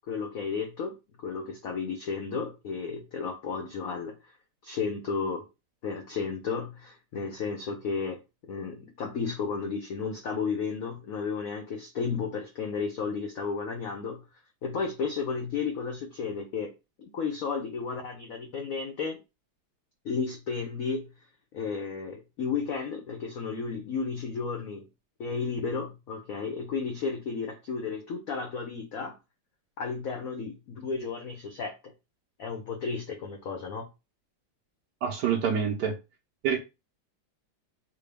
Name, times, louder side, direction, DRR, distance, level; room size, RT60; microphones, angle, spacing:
voice 1, 0.0-4.3 4.6-5.4 5.8-8.2 8.5-14.2 14.6-16.7 17.0-19.2 20.0-21.1 21.5-24.8 25.2-29.2 29.8-31.7 32.4-33.9, left 5 dB, 80° left, 3 dB, 0.7 m, -33 dB
voice 2, 35.0-36.0 36.4-36.6, right 7 dB, 70° right, 2 dB, 1.1 m, -26 dB
3.6 x 2.2 x 3.3 m, 0.26 s
omnidirectional pair, 2.2 m